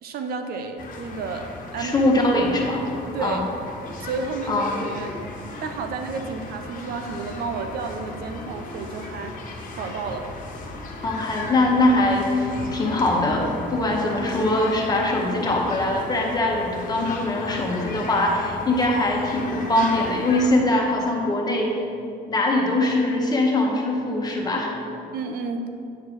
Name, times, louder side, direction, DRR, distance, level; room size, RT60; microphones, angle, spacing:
voice 1, 0.0-1.4 1.7-2.0 3.1-3.4 4.0-5.1 5.6-9.3 9.7-10.3 25.1-25.7, right 4 dB, 65° right, 6 dB, 0.7 m, -31 dB
sound 1, 0.8-20.5, left 2 dB, 50° left, 1.4 m, -37 dB
voice 2, 1.8-2.9 3.2-3.4 4.5-4.8 11.0-21.8 22.3-24.7, left 1 dB, 25° left, -1 dB, 1.6 m, -22 dB
9.0 x 4.6 x 6.3 m, 2.6 s
cardioid pair, 110°, 17 cm